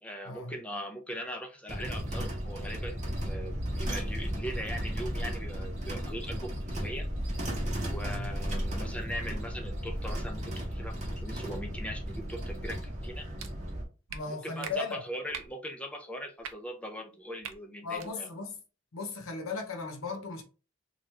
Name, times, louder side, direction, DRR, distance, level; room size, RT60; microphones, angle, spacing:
voice 1, 0.0-7.1 7.9-13.3 14.3-18.3, equal, 5° left, 0.5 m, -40 dB
sound 1, 1.7-13.8, equal, 35° right, 0.8 m, -34 dB
voice 2, 8.0-8.3 14.1-15.0 17.8-18.6 18.9-20.4, left 3 dB, 80° left, 0.7 m, -36 dB
sound 2, 13.4-13.5 14.1-14.2 14.6-14.7 15.3-15.5 16.4-16.5 17.4-17.6 17.9-18.1, right 7 dB, 70° right, 0.4 m, -40 dB
2.9 x 2.4 x 3.2 m
head